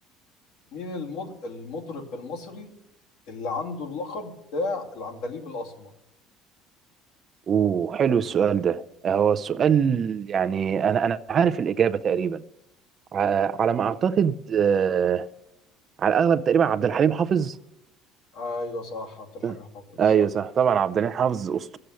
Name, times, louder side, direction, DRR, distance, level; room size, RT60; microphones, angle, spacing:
voice 1, 0.7-2.7 3.3-5.9 18.3-20.2, left 3 dB, 75° left, 2.5 m, -34 dB
voice 2, 7.5-12.4 13.1-15.3 16.0-17.6 19.4-19.6 20.0-21.8, right 7 dB, 35° right, 0.4 m, -22 dB
13.5 x 7.6 x 8.3 m
cardioid pair, 135°, 0 cm